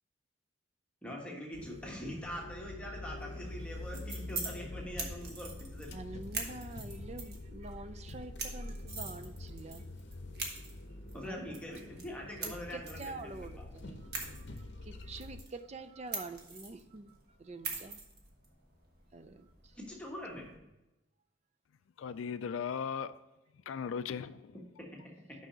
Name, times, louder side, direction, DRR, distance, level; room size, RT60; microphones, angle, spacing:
voice 1, 1.0-6.0 11.1-13.3 13.6-13.7 19.8-20.7 24.8-25.1, equal, 5° left, 1.2 m, -43 dB
sound 1, 1.5-15.4, left 2 dB, 55° left, 0.7 m, -46 dB
sound 2, 3.6-20.5, right 4 dB, 50° right, 1.3 m, -45 dB
voice 2, 5.9-9.9 11.2-11.6 11.9-12.0 12.4-18.0 19.1-19.8, right 3 dB, 35° right, 0.4 m, -47 dB
voice 3, 22.0-23.1 23.7-24.6, left 6 dB, 75° left, 0.3 m, -37 dB
6.2 x 5.6 x 5.0 m
head